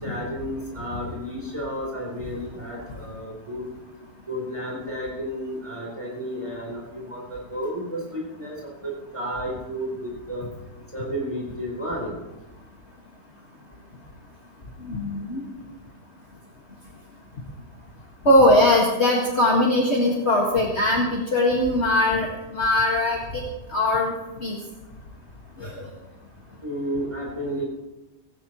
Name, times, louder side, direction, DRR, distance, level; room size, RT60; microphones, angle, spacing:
voice 1, 0.0-3.7 4.3-10.5 10.9-12.2 26.6-27.7, equal, 15° right, -3 dB, 4.1 m, -32 dB
voice 2, 14.8-15.4 18.3-23.4 23.7-24.1 24.4-24.6 25.6-25.9, left 1 dB, 40° left, -2 dB, 2.0 m, -20 dB
18.0 x 17.5 x 3.1 m, 1.0 s
omnidirectional pair, 1.8 m